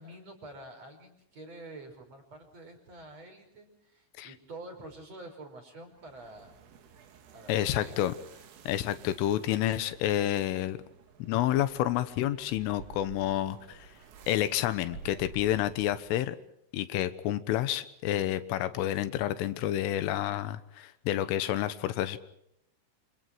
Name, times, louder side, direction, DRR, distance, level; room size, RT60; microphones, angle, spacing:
voice 1, 0.0-6.5 7.3-8.1, right 2 dB, 35° right, 4 dB, 6.2 m, -47 dB
sound 1, 5.9-16.3, right 7 dB, 85° right, 5.2 m, -52 dB
voice 2, 7.5-8.1 8.7-10.8 11.2-13.9 14.3-16.4 16.7-22.2, left 13 dB, 85° left, 13 dB, 3.8 m, -29 dB
28.5 x 28.0 x 4.8 m, 0.76 s
omnidirectional pair, 5.7 m